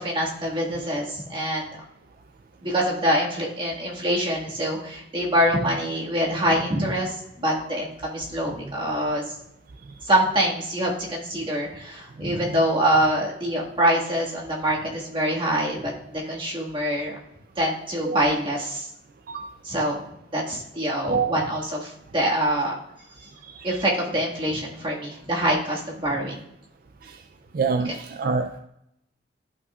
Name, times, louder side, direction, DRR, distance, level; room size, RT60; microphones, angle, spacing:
voice 1, 0.0-1.7 2.6-9.3 10.0-17.1 17.6-18.9 19.6-20.0 20.3-22.7 23.6-26.4, equal, 30° right, -3 dB, 1.8 m, -25 dB
voice 2, 27.5-28.6, right 5 dB, 55° right, 5 dB, 0.4 m, -26 dB
12.0 x 5.5 x 2.4 m, 0.80 s
head